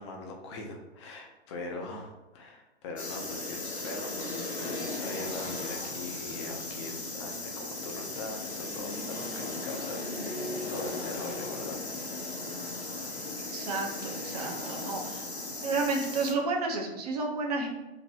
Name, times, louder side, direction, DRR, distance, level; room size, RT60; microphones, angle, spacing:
voice 1, 0.0-11.8, left 3 dB, 25° left, 1 dB, 0.6 m, -41 dB
sound 1, 3.0-16.3, left 2 dB, 85° left, 0.8 m, -37 dB
voice 2, 13.4-15.3 15.6-17.7, right 3 dB, 40° right, 2 dB, 0.7 m, -31 dB
2.9 x 2.9 x 4.5 m, 1.0 s
figure-of-eight pair, 115°, 32 cm